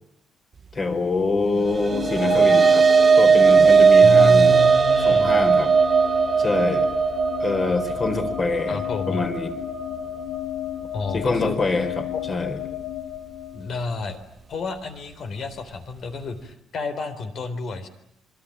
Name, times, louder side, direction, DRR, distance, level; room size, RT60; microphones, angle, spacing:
voice 1, 0.7-2.9 3.2-4.6 5.0-5.7 6.4-6.9 7.4-9.6 11.1-12.6, left 3 dB, 30° left, 6 dB, 4.5 m, -25 dB
sound 1, 1.6-10.2, right 5 dB, 30° right, 1.0 m, -17 dB
sound 2, 1.9-14.0, left 11 dB, 75° left, 1.3 m, -32 dB
voice 2, 4.0-5.4 8.7-9.3 10.9-11.8 12.1-12.2 13.5-14.2 14.5-17.9, left 3 dB, 50° left, 9 dB, 3.9 m, -29 dB
27.0 x 23.5 x 8.8 m, 0.77 s
cardioid pair, 150°, 0 cm